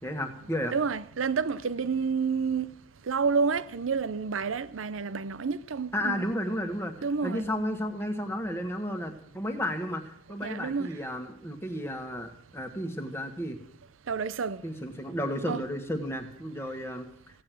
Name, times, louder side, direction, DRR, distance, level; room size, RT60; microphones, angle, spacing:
voice 1, 0.0-0.7 5.9-6.9 7.2-13.6 14.6-17.0, equal, 15° left, 1.5 m, -33 dB
voice 2, 0.7-2.7 3.0-6.3 7.0-7.5 10.4-10.9 14.1-14.6 15.5-15.6, right 5 dB, 85° right, 0.6 m, -29 dB
15.5 x 8.8 x 7.6 m
head